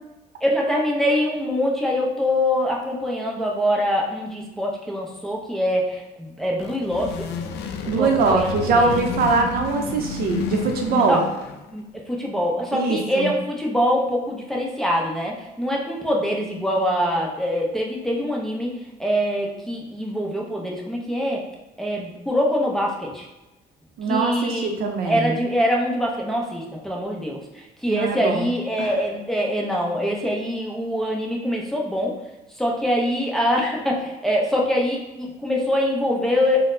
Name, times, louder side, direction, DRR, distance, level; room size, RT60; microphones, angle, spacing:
voice 1, 0.4-7.3 7.8-9.0 9.9-10.0 10.9-11.3 11.7-18.7 19.0-21.5 21.8-23.3 24.1-24.7 25.0-32.2 32.6-36.6, equal, ahead, -2 dB, 0.6 m, -24 dB
sound 1, 6.4-11.7, left 5 dB, 75° left, 0.4 m, -31 dB
voice 2, 7.9-11.2 12.7-13.3 24.0-25.4 27.9-28.5 28.8-28.9, right 4 dB, 65° right, 3 dB, 0.5 m, -22 dB
3.9 x 2.0 x 2.6 m, 1.0 s
cardioid pair, 110°, 17 cm